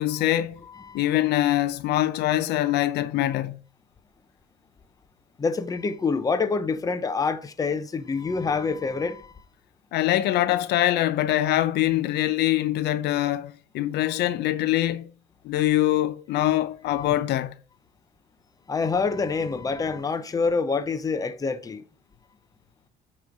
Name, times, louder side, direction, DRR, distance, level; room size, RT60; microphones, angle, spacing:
voice 1, 0.0-0.6 0.9-3.6 9.9-15.1 15.4-17.5, left 14 dB, 80° left, 0.7 m, -23 dB
voice 2, 5.4-9.3 14.0-14.1 18.7-21.8, left 4 dB, 20° left, 0.7 m, -26 dB
8.5 x 3.2 x 5.1 m
cardioid pair, 110°, 17 cm